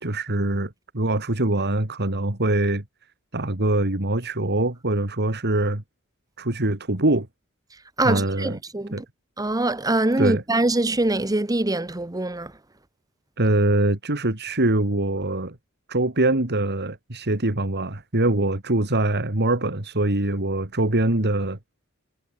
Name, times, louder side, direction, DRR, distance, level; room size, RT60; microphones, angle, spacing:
voice 1, 0.0-2.8 3.3-5.8 6.4-7.3 8.0-8.6 8.9-9.0 10.2-10.4 13.4-15.6 15.9-21.6, right 2 dB, 50° right, 2.8 m, -23 dB
voice 2, 8.0-9.0 9.4-12.5, right 2 dB, 15° right, 1.0 m, -23 dB
head